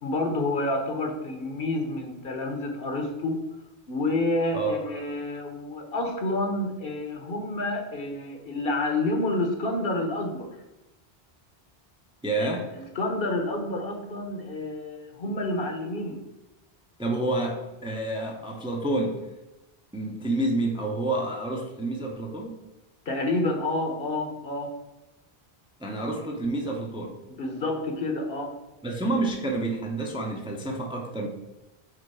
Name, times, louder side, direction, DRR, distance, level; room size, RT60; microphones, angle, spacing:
voice 1, 0.0-3.4 3.9-10.5 12.4-12.5 13.0-16.2 23.1-24.8 27.3-28.6, left 2 dB, 65° left, 3 dB, 1.2 m, -29 dB
voice 2, 12.2-12.7 17.0-19.3 19.9-22.6 25.8-27.2 28.8-31.3, right 2 dB, 5° right, 1 dB, 0.6 m, -29 dB
5.1 x 4.0 x 4.8 m, 0.97 s
omnidirectional pair, 1.1 m